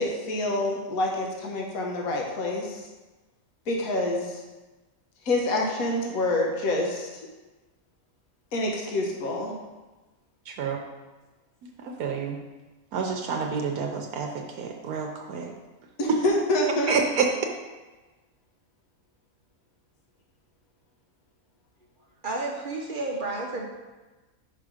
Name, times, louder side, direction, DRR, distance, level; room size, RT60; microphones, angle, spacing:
voice 1, 0.0-2.8 3.7-4.4 5.2-7.1 8.5-9.5 16.0-16.9, left 1 dB, 70° left, -1 dB, 1.5 m, -27 dB
voice 2, 10.5-10.8 11.8-12.4 12.9-15.5 16.1-16.2 16.9-17.3, right 5 dB, 75° right, 2 dB, 1.2 m, -28 dB
voice 3, 22.2-23.7, right 2 dB, 45° right, 0 dB, 0.8 m, -31 dB
5.7 x 4.9 x 4.9 m, 1.2 s
omnidirectional pair, 1.6 m